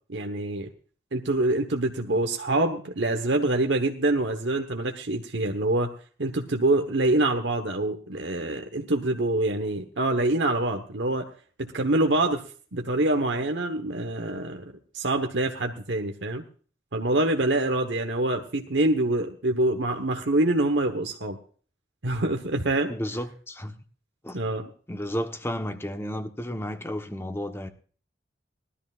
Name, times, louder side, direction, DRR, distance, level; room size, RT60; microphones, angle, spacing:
voice 1, 0.1-0.7 1.1-5.9 6.2-11.3 11.6-12.4 12.7-14.6 14.9-16.4 16.9-21.4 22.0-22.9 24.3-24.7, right 2 dB, 75° right, 1.3 m, -25 dB
voice 2, 22.9-23.7 24.2-24.4 24.9-27.7, equal, 15° left, 1.2 m, -32 dB
20.0 x 13.5 x 2.5 m
head